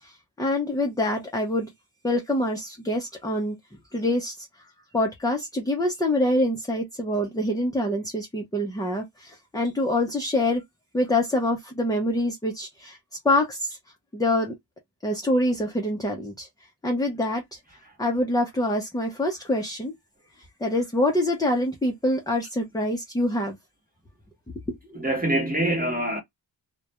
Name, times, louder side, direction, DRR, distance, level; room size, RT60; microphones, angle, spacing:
voice 1, 0.0-1.7 2.0-3.6 3.9-4.5 4.9-10.6 10.9-13.0 13.2-13.8 14.1-14.6 15.0-16.5 16.8-17.6 18.0-19.9 20.6-23.6 24.7-24.8, left 1 dB, 10° left, 0.5 m, -25 dB
voice 2, 24.9-26.2, right 1 dB, 20° right, 0.9 m, -24 dB
2.2 x 2.1 x 2.8 m
wide cardioid pair, 115°, 44 cm